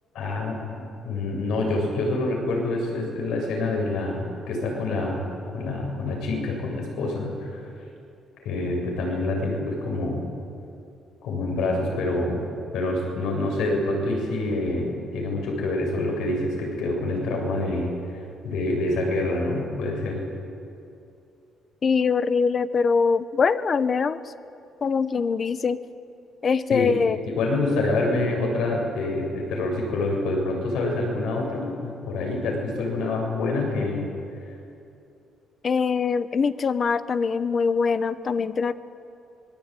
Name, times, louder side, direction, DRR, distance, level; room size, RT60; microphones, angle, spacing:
voice 1, 0.1-5.2 5.5-7.6 8.4-10.3 11.2-12.4 12.7-20.2 26.7-26.9 27.3-34.1, left 2 dB, 90° left, 1 dB, 7.3 m, -26 dB
voice 2, 21.8-24.2 24.8-25.8 26.4-27.2 35.6-38.7, left 5 dB, 35° left, 14 dB, 0.9 m, -23 dB
25.5 x 21.5 x 9.2 m, 2.7 s
cardioid pair, 140°, 0 cm